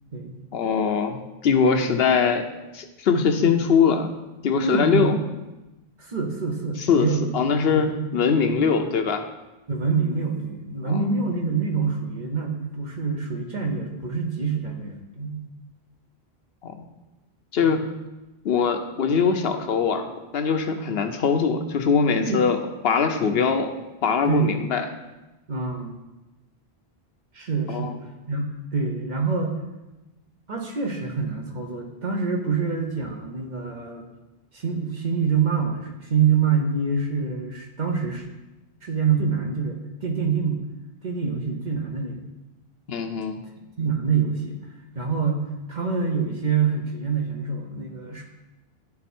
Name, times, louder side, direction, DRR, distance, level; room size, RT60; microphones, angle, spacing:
voice 1, 0.5-2.5 2.7-4.1 4.4-5.2 6.8-7.1 7.3-9.2 10.8-10.9 16.6-16.7 17.5-17.8 18.4-20.1 20.3-22.6 22.8-23.7 24.0-24.8 27.7-27.9 42.9-43.4, left 6 dB, 70° left, 7 dB, 0.9 m, -22 dB
voice 2, 4.6-5.2 6.0-7.3 7.7-7.8 9.7-15.5 17.6-17.8 22.2-22.4 24.3-24.5 25.5-26.0 27.3-28.0 28.3-29.6 30.5-34.1 34.5-38.3 38.8-40.6 41.0-42.2 43.8-44.6 44.9-45.4 45.7-48.2, right 5 dB, 45° right, 2 dB, 1.0 m, -26 dB
11.0 x 4.0 x 4.2 m, 1.0 s
omnidirectional pair, 1.1 m